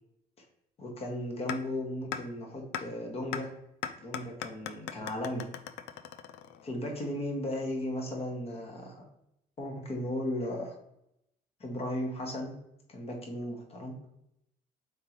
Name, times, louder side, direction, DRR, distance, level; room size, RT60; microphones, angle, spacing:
voice 1, 0.8-3.5 4.0-5.5 6.6-9.0 9.6-10.8 11.6-12.6 12.9-14.0, left 1 dB, 35° left, 2 dB, 1.2 m, -36 dB
sound 1, 1.5-1.6 2.1-2.2 2.7-2.8 3.3-3.4 3.8-6.8, left 9 dB, 90° left, 0.4 m, -37 dB
4.6 x 3.7 x 3.0 m, 0.80 s
cardioid pair, 110°, 17 cm